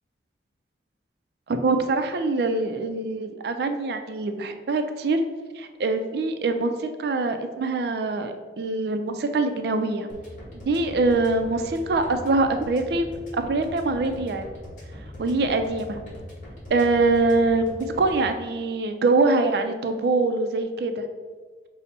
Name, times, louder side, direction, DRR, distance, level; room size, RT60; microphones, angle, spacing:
voice 1, 1.5-5.2 5.5-10.1 10.5-13.1 13.3-14.5 15.2-16.0 16.7-21.1, right 3 dB, 60° right, 7 dB, 0.3 m, -24 dB
sound 1, 10.1-18.1, left 1 dB, 45° left, 1.2 m, -41 dB
5.7 x 2.0 x 4.1 m, 1.5 s
head